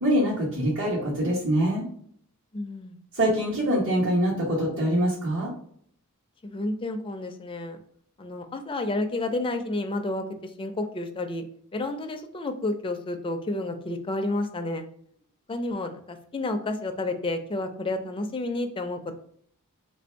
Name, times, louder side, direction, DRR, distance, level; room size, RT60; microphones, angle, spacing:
voice 1, 0.0-1.9 3.1-5.5, equal, 65° right, -8 dB, 1.2 m, -24 dB
voice 2, 2.5-3.0 6.4-7.8 8.2-11.4 11.7-14.9 15.5-19.1, left 2 dB, 25° left, 6 dB, 0.4 m, -30 dB
3.3 x 2.6 x 4.3 m, 0.63 s
head